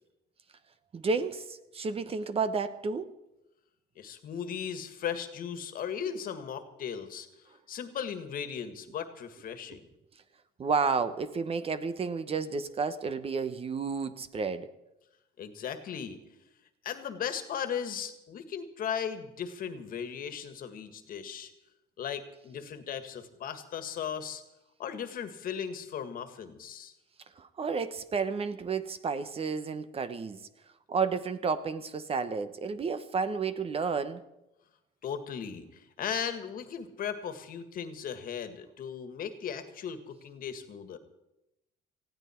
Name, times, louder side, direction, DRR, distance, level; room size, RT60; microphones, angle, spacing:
voice 1, 0.9-3.1 10.6-14.7 27.4-30.5 30.9-34.2, right 5 dB, 35° right, 1.0 m, -31 dB
voice 2, 3.9-7.3 7.7-9.9 15.4-16.2 16.8-21.5 22.0-24.4 24.8-26.9 35.0-41.0, left 8 dB, 60° left, 1.8 m, -37 dB
19.5 x 15.5 x 4.5 m
cardioid pair, 110°, 17 cm